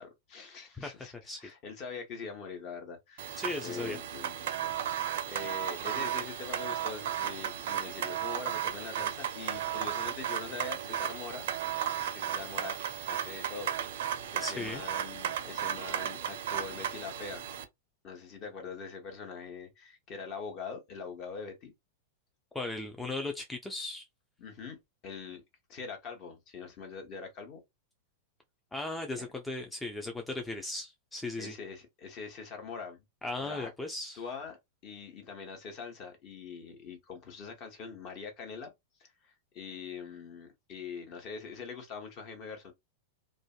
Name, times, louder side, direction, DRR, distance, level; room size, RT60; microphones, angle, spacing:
voice 1, 0.0-12.8 13.1-13.7 14.3-17.4 18.0-21.7 24.4-24.8 25.0-25.4 25.7-27.6 29.1-29.3 31.4-33.0 33.4-33.7 34.2-34.6 34.8-38.7 39.0-42.7, left 5 dB, 40° left, 0.8 m, -43 dB
voice 2, 0.7-1.4 3.4-4.0 14.4-14.8 22.5-24.1 28.7-31.5 33.2-34.2, left 2 dB, 10° left, 0.4 m, -37 dB
sound 1, 3.2-17.6, right 9 dB, 55° right, 0.4 m, -35 dB
2.5 x 2.2 x 2.3 m
figure-of-eight pair, 95°, 0 cm